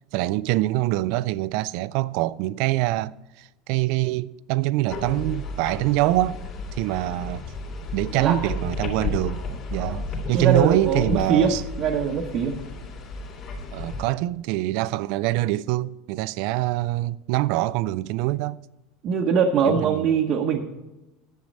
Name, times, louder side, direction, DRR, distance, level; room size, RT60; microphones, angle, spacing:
voice 1, 0.1-6.4 6.8-7.5 7.9-9.4 9.7-11.6 13.7-18.6 19.6-20.1, right 17 dB, 55° right, 0.3 m, -24 dB
sound 1, 4.9-14.1, left 3 dB, 35° left, 2.4 m, -33 dB
voice 2, 8.1-8.5 9.8-10.0 10.3-12.6 19.0-20.6, right 6 dB, 40° right, 0.9 m, -22 dB
10.5 x 7.6 x 5.3 m
cardioid pair, 160°, 0 cm